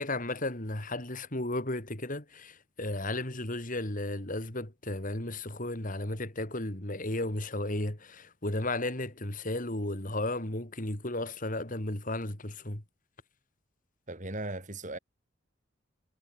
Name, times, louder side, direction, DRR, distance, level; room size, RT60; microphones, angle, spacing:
voice 1, 0.0-12.8, left 2 dB, 40° left, 3.3 m, -34 dB
voice 2, 14.1-15.0, right 2 dB, 40° right, 6.1 m, -37 dB
head